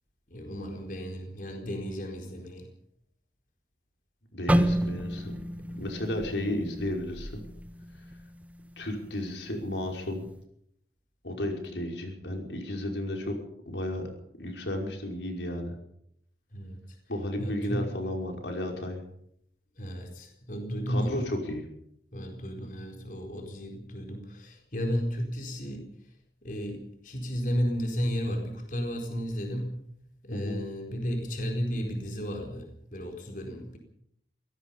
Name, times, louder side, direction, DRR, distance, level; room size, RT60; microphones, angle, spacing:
voice 1, 0.3-2.7 5.7-5.9 16.5-17.0 17.4-17.9 19.8-21.3 22.1-25.9 26.4-29.8 30.2-33.8, equal, 50° left, 2 dB, 4.4 m, -33 dB
voice 2, 4.3-5.4 5.8-7.4 8.8-10.3 11.2-13.4 13.7-14.0 14.4-15.8 17.1-19.0 20.9-21.7 30.3-30.6, left 1 dB, 85° left, 2 dB, 5.5 m, -33 dB
sound 1, 4.5-8.5 8.9-9.1 9.8-10.1, equal, 10° right, 1.2 m, -30 dB
25.5 x 18.0 x 5.6 m, 0.71 s
head